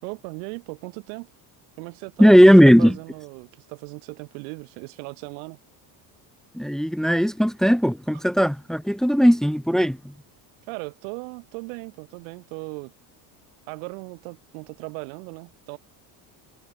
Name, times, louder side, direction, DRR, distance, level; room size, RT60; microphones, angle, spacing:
voice 1, 0.0-1.3 1.8-2.5 2.8-5.6 8.1-8.2 10.7-12.9 13.7-15.8, right 40 dB or more, 85° right, 6.2 m, -37 dB
voice 2, 2.2-3.0 6.6-10.0, equal, ahead, 2.0 m, -16 dB
supercardioid pair, 105°, 50 cm